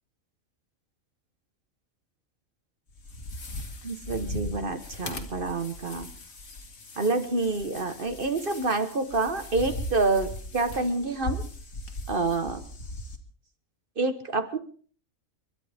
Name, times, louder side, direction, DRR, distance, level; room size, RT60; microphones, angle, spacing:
sound 1, 2.9-13.2, left 1 dB, 65° left, 2.0 m, -39 dB
voice 1, 3.8-6.1 7.0-11.4 12.1-12.6 14.0-14.6, right 3 dB, 40° right, 8 dB, 1.4 m, -27 dB
30.0 x 11.5 x 3.5 m, 0.44 s
omnidirectional pair, 1.4 m